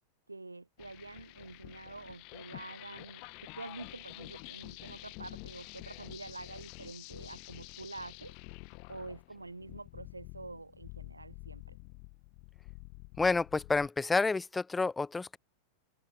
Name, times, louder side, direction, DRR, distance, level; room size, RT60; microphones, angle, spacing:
voice 1, 0.3-8.4 8.9-11.8, right 3 dB, 80° right, 3.5 m, -47 dB
sound 1, 0.8-13.9, left 35 dB, 45° left, 4.8 m, -49 dB
voice 2, 13.2-15.4, left 3 dB, 10° left, 0.4 m, -29 dB
figure-of-eight pair, 90°, 0 cm